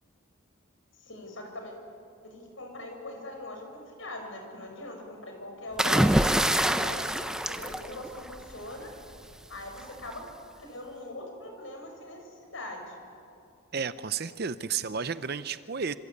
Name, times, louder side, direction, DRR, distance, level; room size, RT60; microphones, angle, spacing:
voice 1, 1.0-1.7 2.2-8.9 9.5-10.3 10.6-13.0, left 1 dB, 65° left, 3 dB, 5.6 m, -41 dB
sound 1, 5.8-8.5 9.8-10.1, right 1 dB, 5° right, 0.7 m, -25 dB
voice 2, 13.7-15.9, right 6 dB, 50° right, 13 dB, 0.6 m, -32 dB
27.0 x 26.5 x 8.5 m, 2.6 s
head